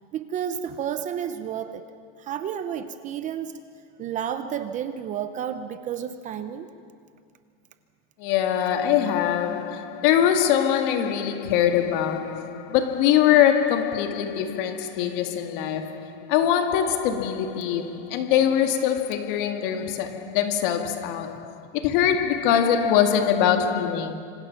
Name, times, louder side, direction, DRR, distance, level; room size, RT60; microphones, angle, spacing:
voice 1, 0.1-1.8 2.2-3.5 4.0-6.7 19.8-19.9, right 9 dB, 20° right, 0.7 m, -31 dB
voice 2, 8.2-24.1, left 9 dB, 50° left, 2.0 m, -23 dB
26.5 x 26.0 x 5.9 m
supercardioid pair, 165°, 33 cm